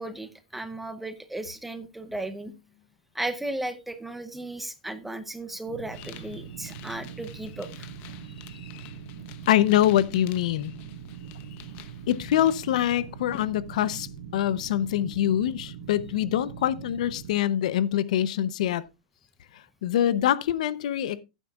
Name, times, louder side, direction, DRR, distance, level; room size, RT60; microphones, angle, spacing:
voice 1, 0.0-2.5 3.1-7.9, right 1 dB, 5° right, 0.7 m, -35 dB
sound 1, 5.7-17.3, right 7 dB, 85° right, 1.8 m, -42 dB
sound 2, 5.9-13.5, left 12 dB, 35° left, 1.0 m, -49 dB
voice 2, 9.5-10.7 12.1-14.1 14.3-18.8 19.5-21.2, left 11 dB, 65° left, 0.7 m, -24 dB
15.0 x 9.1 x 2.4 m
supercardioid pair, 155°, 4 cm